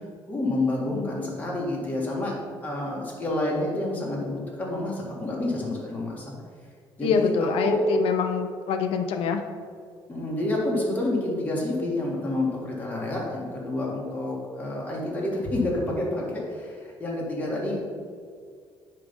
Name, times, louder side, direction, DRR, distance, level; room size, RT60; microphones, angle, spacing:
voice 1, 0.3-2.4 2.6-6.3 7.0-7.9 10.1-17.8, left 1 dB, 15° left, -3 dB, 1.8 m, -28 dB
voice 2, 7.0-9.4, left 6 dB, 85° left, 6 dB, 0.7 m, -25 dB
9.9 x 3.4 x 5.3 m, 2.1 s
cardioid pair, 150°, 9 cm